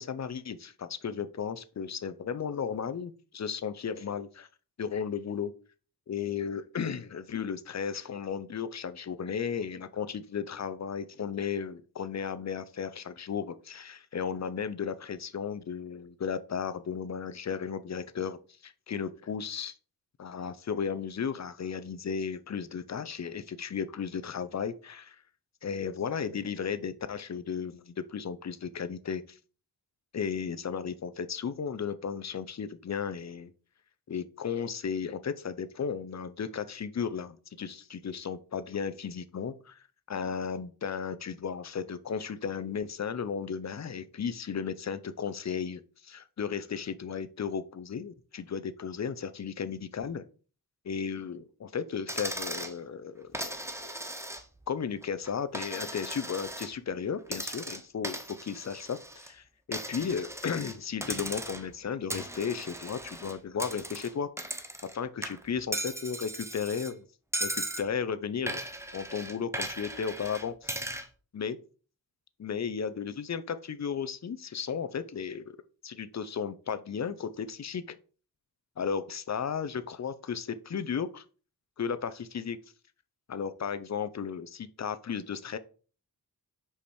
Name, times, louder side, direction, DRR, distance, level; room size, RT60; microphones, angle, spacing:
voice 1, 0.0-4.5 4.8-5.5 6.1-18.4 18.6-19.7 20.2-25.2 25.6-29.4 30.1-33.5 34.1-50.2 50.8-54.0 54.7-64.3 64.8-67.0 67.4-68.6 68.9-70.8 71.3-71.6 72.4-75.5 75.8-78.0 78.8-81.2 81.8-82.6 83.3-85.6, left 6 dB, 45° left, 0.6 m, -35 dB
Coin (dropping), 52.1-52.8 53.3-54.7 55.0-56.7 57.3-59.3 59.7-60.8 61.0-61.7 62.1-65.0 65.2-66.9 67.3-67.9 68.5-71.1, right 1 dB, 5° right, 0.8 m, -37 dB
5.4 x 4.9 x 4.3 m
wide cardioid pair, 75°, 39 cm